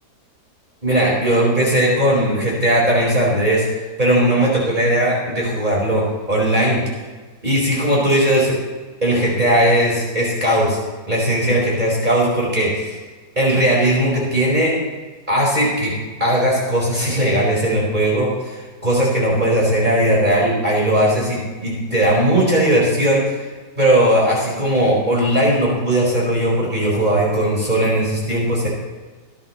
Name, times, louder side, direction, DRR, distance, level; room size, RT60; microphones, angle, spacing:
voice 1, 0.8-3.6 4.0-6.8 7.4-8.6 9.0-10.8 11.1-13.0 13.3-14.7 15.3-15.9 16.2-23.5 23.8-28.7, right 1 dB, 25° right, -5 dB, 4.7 m, -18 dB
24.5 x 10.5 x 3.1 m, 1.3 s
omnidirectional pair, 1.8 m